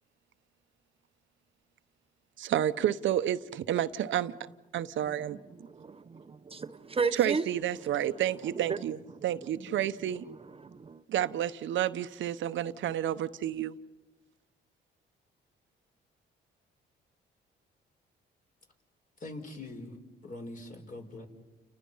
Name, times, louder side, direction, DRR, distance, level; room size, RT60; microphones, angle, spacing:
voice 1, 2.4-4.4 4.7-5.4 7.1-10.2 11.1-13.8, right 11 dB, 70° right, 0.8 m, -30 dB
voice 2, 5.7-7.4 8.5-8.8 10.7-11.0, right 5 dB, 30° right, 0.8 m, -33 dB
voice 3, 19.2-20.0 20.2-21.3, left 2 dB, 40° left, 4.8 m, -42 dB
30.0 x 29.5 x 5.6 m
cardioid pair, 90°, 20 cm